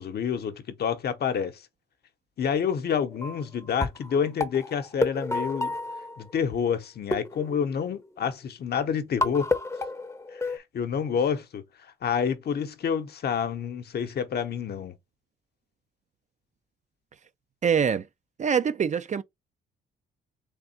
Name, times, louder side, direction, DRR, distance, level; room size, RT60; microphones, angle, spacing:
voice 1, 0.0-1.6 2.4-5.7 6.2-9.5 10.3-11.6 12.0-14.9, left 7 dB, 55° left, 0.8 m, -28 dB
sound 1, 3.1-3.4 3.8-6.6 7.1-8.2 9.2-10.6, left 2 dB, 15° left, 0.7 m, -30 dB
voice 2, 17.6-18.1 18.4-19.2, right 7 dB, 35° right, 0.5 m, -24 dB
3.6 x 3.5 x 4.2 m
cardioid pair, 90°, 20 cm